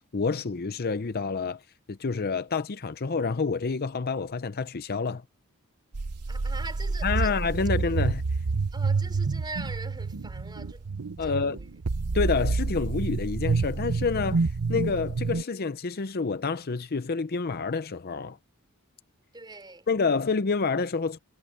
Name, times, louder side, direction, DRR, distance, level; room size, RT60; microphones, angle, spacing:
voice 1, 0.0-1.6 1.9-5.2 7.0-8.2 11.2-11.6 12.1-18.4 19.9-21.2, left 4 dB, 45° left, 0.6 m, -28 dB
sound 1, 5.9-15.4, right 4 dB, 90° right, 0.8 m, -28 dB
voice 2, 6.3-7.4 8.7-10.9 11.2-11.8 19.3-19.9, right 3 dB, 20° right, 4.4 m, -42 dB
head